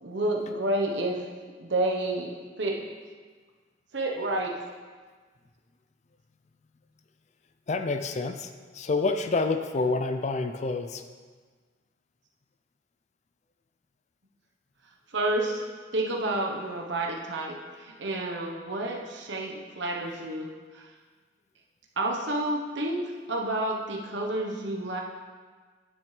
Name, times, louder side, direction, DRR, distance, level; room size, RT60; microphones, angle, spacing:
voice 1, 0.0-1.2 1.6-2.3 2.6-2.8 3.9-4.5 15.1-17.6 18.0-20.5 22.0-23.0 23.3-25.0, right 1 dB, 70° right, 0 dB, 1.1 m, -29 dB
voice 2, 7.7-8.5 8.7-11.0, left 3 dB, 40° left, 8 dB, 0.4 m, -28 dB
9.9 x 6.8 x 3.3 m, 1.5 s
head